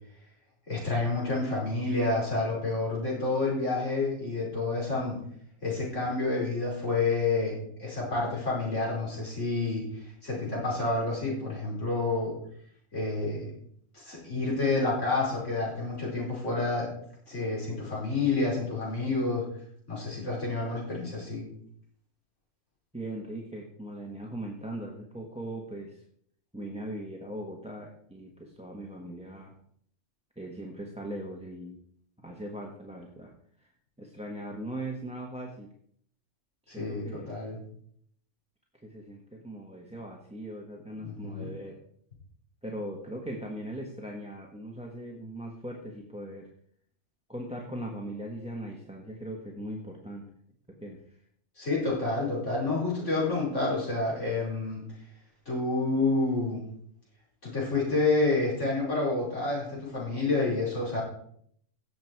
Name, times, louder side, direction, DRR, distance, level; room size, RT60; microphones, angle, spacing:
voice 1, 0.7-5.2 5.6-9.9 10.2-12.4 12.9-13.5 13.9-16.9 17.3-19.5 19.9-21.5 36.7-37.6 41.0-41.5 51.6-54.8 55.5-56.6 57.4-61.0, left 3 dB, 75° left, -5 dB, 5.6 m, -29 dB
voice 2, 22.9-26.0 26.5-29.5 30.4-31.8 32.2-33.3 33.6-33.7 34.0-35.7 36.7-37.3 38.8-41.8 42.6-46.5 47.3-50.2 50.7-51.2, right 1 dB, 5° right, 0 dB, 1.3 m, -39 dB
17.0 x 7.3 x 4.7 m, 0.67 s
omnidirectional pair, 1.3 m